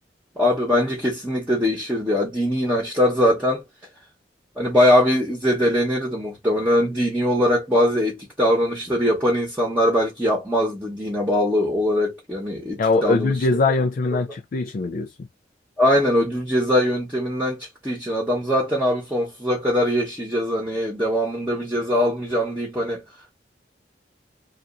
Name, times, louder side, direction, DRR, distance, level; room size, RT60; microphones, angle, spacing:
voice 1, 0.4-3.6 4.6-13.3 15.8-23.0, left 1 dB, 10° right, 0.9 m, -21 dB
voice 2, 12.8-15.3, left 3 dB, 50° left, 0.3 m, -22 dB
2.8 x 2.4 x 2.5 m
head